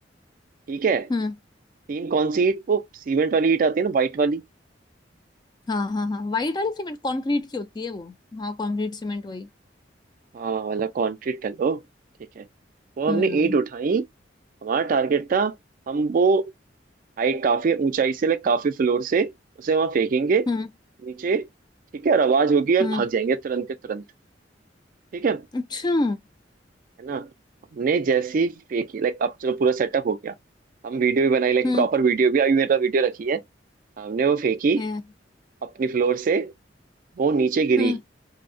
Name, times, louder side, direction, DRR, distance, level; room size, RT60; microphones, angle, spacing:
voice 1, 0.7-1.1 1.9-4.4 10.3-11.8 12.4-12.5 13.0-14.0 14.6-15.5 15.9-16.4 17.2-19.3 19.6-20.5 21.1-21.5 21.9-24.0 25.1-25.5 27.0-27.3 27.7-30.3 30.8-33.4 34.0-34.8 35.6-36.5 37.2-38.0, right 5 dB, 50° right, 0.3 m, -22 dB
voice 2, 5.7-9.5 13.1-13.6 20.5-20.7 22.8-23.1 25.5-26.2 31.6-31.9 34.8-35.0 37.8-38.0, left 2 dB, 25° left, 0.3 m, -27 dB
2.6 x 2.1 x 2.5 m
head